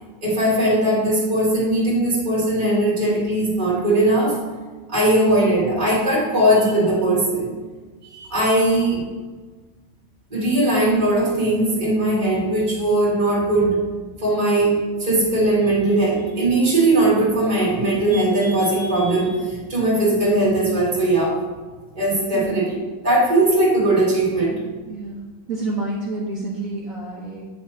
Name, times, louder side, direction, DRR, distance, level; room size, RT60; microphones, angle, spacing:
voice 1, 0.2-4.4 4.9-7.5 8.1-9.0 10.3-13.8 14.2-14.7 15.0-21.3 22.0-22.8 23.0-24.6, right 1 dB, 20° right, -7 dB, 2.2 m, -19 dB
voice 2, 22.3-22.7 24.9-27.5, right 2 dB, 55° right, -3 dB, 1.0 m, -30 dB
8.6 x 3.4 x 4.4 m, 1.3 s
omnidirectional pair, 2.2 m